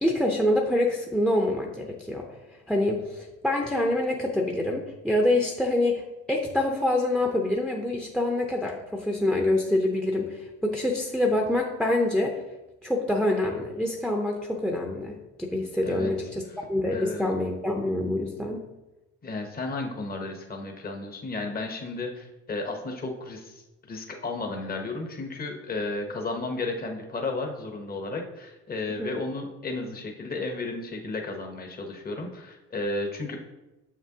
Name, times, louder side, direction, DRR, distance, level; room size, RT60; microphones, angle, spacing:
voice 1, 0.0-2.3 2.7-12.3 12.8-16.4 16.7-18.6 28.9-29.2, left 1 dB, ahead, -1 dB, 0.6 m, -26 dB
voice 2, 16.9-17.3 19.2-33.4, left 3 dB, 30° left, 3 dB, 0.9 m, -33 dB
6.7 x 6.0 x 2.8 m, 1.0 s
cardioid pair, 90°, 30 cm